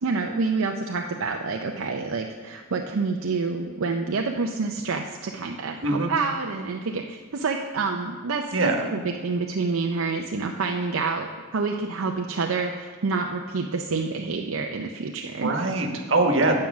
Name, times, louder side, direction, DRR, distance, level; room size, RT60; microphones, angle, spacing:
voice 1, 0.0-11.3 11.5-15.5, right 4 dB, 85° right, 2 dB, 0.6 m, -28 dB
voice 2, 5.8-6.1 8.5-8.9 15.3-16.6, right 2 dB, 65° right, 3 dB, 1.3 m, -23 dB
9.4 x 7.5 x 5.9 m, 1.5 s
head